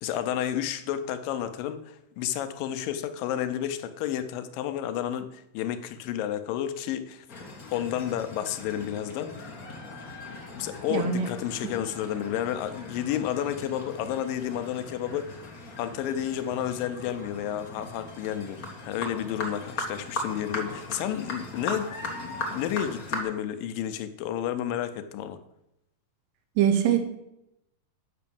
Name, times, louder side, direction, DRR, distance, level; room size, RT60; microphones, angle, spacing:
voice 1, 0.0-7.3 7.7-9.6 10.3-15.4 15.8-25.4, left 10 dB, 90° left, 10 dB, 2.4 m, -31 dB
sound 1, 7.3-23.2, left 2 dB, 55° left, 1.0 m, -39 dB
voice 2, 10.9-11.3 26.6-27.0, right 9 dB, 80° right, 6 dB, 2.5 m, -22 dB
8.5 x 5.9 x 7.0 m, 0.83 s
omnidirectional pair, 3.9 m